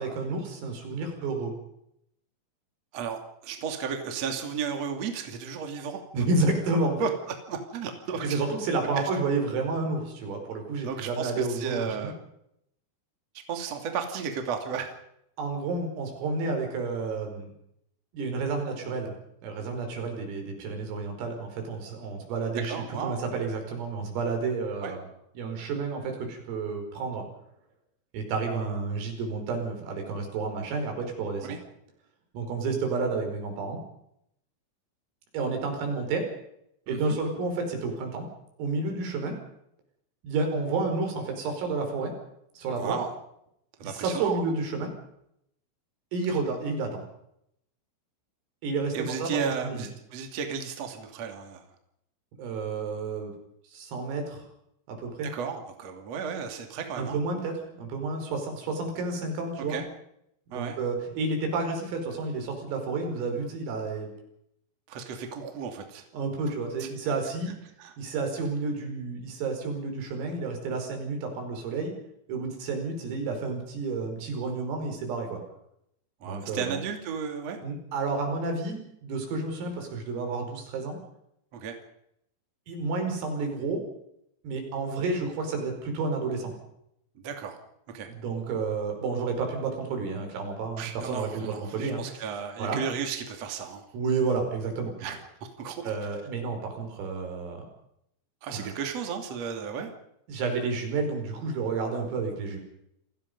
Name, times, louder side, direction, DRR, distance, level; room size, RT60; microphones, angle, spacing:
voice 1, 0.0-1.5 6.1-7.0 8.2-12.1 15.4-17.5 18.1-19.1 19.4-25.0 25.4-27.3 28.1-31.6 32.3-33.8 35.3-36.2 36.9-38.3 38.6-39.4 40.2-42.1 42.6-43.0 43.8-44.9 46.1-47.0 48.6-49.9 52.4-53.3 53.7-54.4 54.9-55.3 57.0-59.8 60.5-64.1 66.1-67.5 68.0-71.9 72.3-75.4 76.2-76.8 77.6-81.0 82.7-83.8 84.4-86.5 88.1-92.2 92.6-92.8 93.9-94.9 95.8-97.6 98.5-98.7 100.3-102.6, right 3 dB, 85° right, 4 dB, 7.7 m, -30 dB
voice 2, 2.9-6.0 7.0-7.1 7.5-8.4 10.8-12.1 13.5-14.9 22.7-23.2 24.8-24.9 31.4-31.6 36.9-37.2 42.8-43.1 43.8-44.4 46.3-46.4 48.9-51.7 55.2-57.2 59.7-59.8 60.5-60.8 64.9-66.0 66.8-67.1 67.8-67.9 76.2-77.6 81.5-81.8 87.2-87.6 87.9-88.1 90.8-93.8 95.0-95.2 95.6-96.1 98.4-99.9, right 6 dB, 40° right, 4 dB, 3.0 m, -34 dB
28.5 x 18.5 x 5.4 m, 0.76 s
omnidirectional pair, 5.8 m